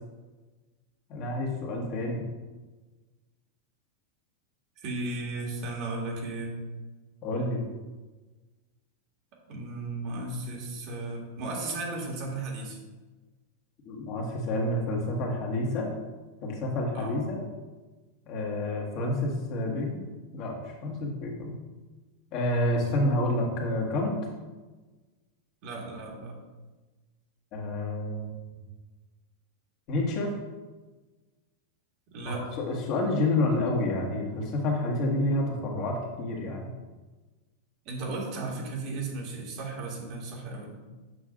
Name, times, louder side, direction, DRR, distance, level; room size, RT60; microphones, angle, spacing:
voice 1, 1.1-2.3 7.2-7.6 13.9-15.9 16.4-17.4 18.3-20.1 20.3-21.6 22.3-24.3 27.5-28.4 29.9-30.3 32.3-36.7, left 1 dB, 40° left, -1 dB, 1.7 m, -29 dB
voice 2, 4.8-6.6 9.5-12.8 16.9-17.2 25.6-26.4 32.1-32.4 37.8-40.8, right 2 dB, 50° right, -1 dB, 2.0 m, -35 dB
7.8 x 6.2 x 2.5 m, 1.3 s
supercardioid pair, 140°, 0 cm